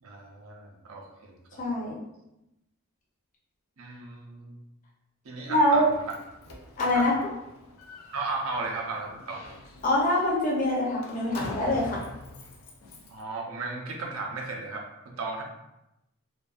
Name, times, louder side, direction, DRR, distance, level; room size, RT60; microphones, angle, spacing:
voice 1, 0.0-1.6 3.8-4.6 5.2-5.8 6.9-7.1 8.1-9.4 13.1-15.4, right 3 dB, 75° right, 0 dB, 0.5 m, -35 dB
voice 2, 1.6-2.0 5.5-5.9 6.8-7.1 9.8-12.0, left 1 dB, 40° left, -4 dB, 0.6 m, -24 dB
Slam, 5.8-13.2, left 2 dB, 90° left, 0.5 m, -44 dB
2.6 x 2.2 x 2.3 m, 0.90 s
head